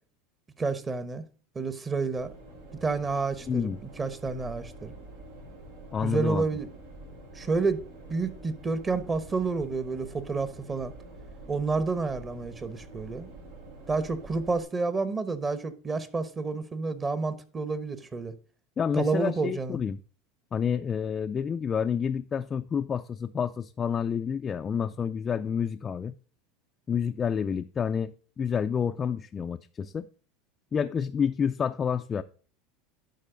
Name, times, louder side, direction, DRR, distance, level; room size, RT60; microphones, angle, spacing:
voice 1, 0.6-1.2 1.5-2.3 2.8-3.7 4.0-4.9 6.0-6.7 7.3-7.8 8.1-10.9 11.5-13.3 13.9-18.3 18.9-19.8, right 4 dB, 25° right, 1.0 m, -29 dB
sound 1, 2.2-14.6, right 2 dB, 85° right, 3.4 m, -47 dB
voice 2, 3.5-3.8 5.9-6.5 18.8-20.0 20.5-26.2 26.9-30.1 30.7-32.2, left 7 dB, 30° left, 0.4 m, -29 dB
11.5 x 4.3 x 3.8 m
supercardioid pair, 105°, 0 cm